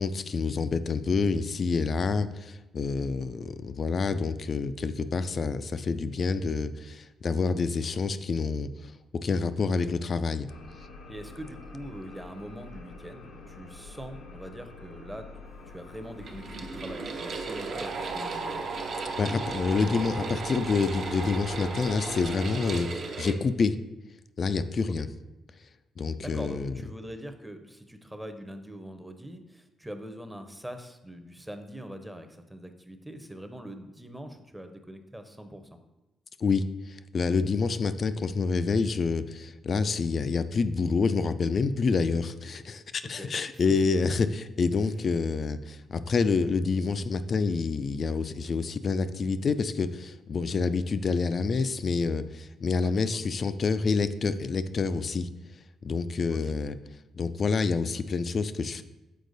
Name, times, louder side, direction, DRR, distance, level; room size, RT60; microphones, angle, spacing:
voice 1, 0.0-10.5 19.2-23.8 24.4-25.1 26.0-26.8 36.4-55.3 55.8-56.8 57.2-58.8, left 4 dB, 45° left, 12 dB, 0.4 m, -28 dB
sound 1, 10.5-22.8, left 3 dB, 80° left, 0.9 m, -46 dB
voice 2, 11.1-15.3 15.7-18.6 26.2-35.7 43.2-43.6 52.8-53.2 56.3-56.4, equal, 5° right, 7 dB, 0.7 m, -43 dB
sound 2, 16.2-23.3, right 4 dB, 55° right, 0.7 m, -35 dB
6.6 x 4.4 x 3.9 m, 1.0 s
cardioid pair, 90°, 0 cm